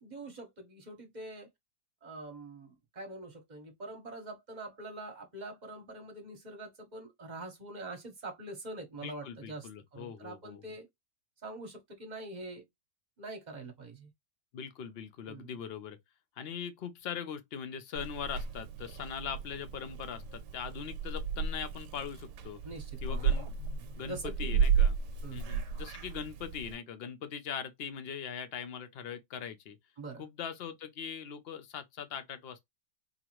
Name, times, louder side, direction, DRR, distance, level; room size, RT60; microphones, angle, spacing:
voice 1, 0.0-1.5 2.0-10.9 11.4-12.6 13.2-14.1 15.3-15.5 22.6-23.3 23.6-24.6 25.2-25.4 30.0-30.2, right 2 dB, 30° right, 1.0 m, -44 dB
voice 2, 9.0-10.6 14.5-16.0 16.4-22.6 23.0-23.6 24.0-24.9 25.3-29.8 30.2-32.6, left 7 dB, 70° left, 0.5 m, -41 dB
Purr / Meow, 17.9-26.7, right 6 dB, 85° right, 1.3 m, -33 dB
3.9 x 2.9 x 3.0 m
omnidirectional pair, 1.8 m